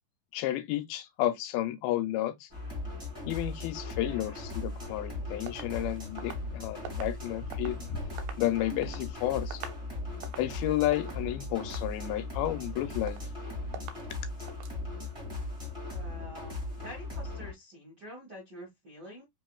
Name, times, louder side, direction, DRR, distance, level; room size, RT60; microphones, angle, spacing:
voice 1, 0.3-2.5 3.2-7.8 8.4-9.6 10.4-13.2, left 14 dB, 85° left, 2.5 m, -31 dB
sound 1, 2.5-17.5, left 2 dB, 15° right, 1.1 m, -38 dB
sound 2, 5.5-7.8 8.1-9.1 9.4-9.9 10.1-10.6 10.9-11.2 11.6-12.0 12.3-12.8 13.1-13.4 13.7-14.1 14.5-14.8, right 8 dB, 80° right, 2.3 m, -45 dB
sound 3, 7.1-8.5 8.9-9.3 10.4-11.6 12.5-12.6, left 2 dB, 55° left, 2.5 m, -46 dB
voice 2, 15.9-19.3, equal, 60° right, 1.1 m, -47 dB
5.3 x 3.1 x 2.2 m
omnidirectional pair, 4.3 m